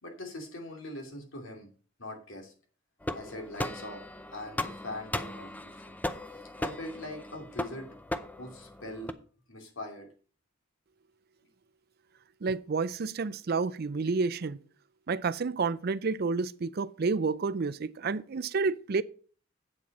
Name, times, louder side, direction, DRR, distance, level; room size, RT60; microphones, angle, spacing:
voice 1, 0.0-1.7 2.0-2.5 3.1-4.0 4.3-5.9 6.3-7.9 8.3-9.2 9.5-10.1, left 1 dB, 80° left, 2.8 m, -42 dB
sound 1, 3.0-9.1, left 1 dB, 10° left, 0.5 m, -37 dB
voice 2, 12.4-14.6 15.1-19.0, right 4 dB, 50° right, 0.5 m, -30 dB
8.3 x 7.7 x 5.4 m
head